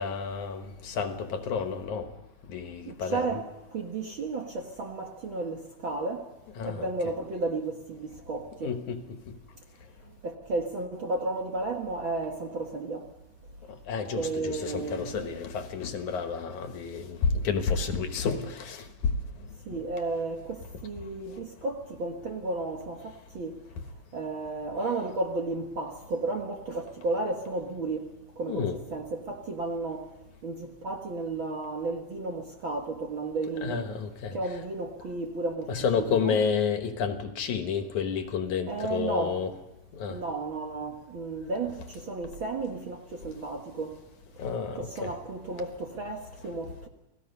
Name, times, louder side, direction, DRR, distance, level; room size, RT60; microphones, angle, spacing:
voice 1, 0.0-2.1 2.5-3.4 6.6-6.9 8.6-9.0 13.9-18.8 28.5-28.8 33.6-34.6 35.7-39.5 39.9-40.2 44.4-45.1, left 6 dB, 65° left, 6 dB, 2.8 m, -30 dB
voice 2, 2.9-6.3 6.6-8.7 10.2-13.1 14.1-15.4 19.7-23.5 24.1-28.1 28.4-30.1 30.4-33.9 34.3-36.4 38.7-39.4 40.1-43.9 44.7-46.9, right 3 dB, 50° right, 2 dB, 1.8 m, -33 dB
30.0 x 19.0 x 5.5 m, 0.89 s
omnidirectional pair, 3.8 m